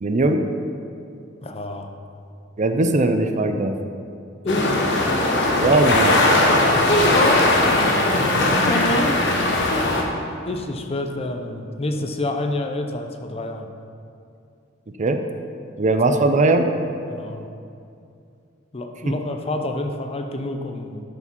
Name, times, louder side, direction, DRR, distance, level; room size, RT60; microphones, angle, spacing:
voice 1, 0.0-0.4 2.6-3.7 5.6-6.1 15.0-15.2 15.8-16.7 19.1-19.2, right 2 dB, 40° right, 7 dB, 0.5 m, -19 dB
voice 2, 1.4-1.9 4.4-4.7 6.9-7.5 8.6-9.2 10.4-13.7 16.1-16.3 17.1-17.5 18.7-21.0, left 1 dB, 30° left, 5 dB, 0.6 m, -27 dB
sound 1, 4.5-10.0, left 2 dB, 65° left, 1.2 m, -19 dB
12.5 x 4.9 x 5.4 m, 2.5 s
head